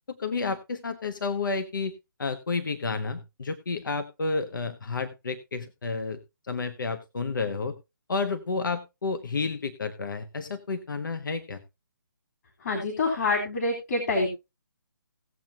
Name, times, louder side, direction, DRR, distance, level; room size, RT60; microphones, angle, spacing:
voice 1, 0.1-1.9 2.2-6.2 6.4-7.7 8.1-11.6, left 4 dB, 70° left, 9 dB, 1.2 m, -31 dB
voice 2, 12.6-14.3, left 3 dB, 50° left, 2 dB, 3.7 m, -26 dB
18.0 x 7.8 x 2.8 m, 0.25 s
figure-of-eight pair, 145°, 11 cm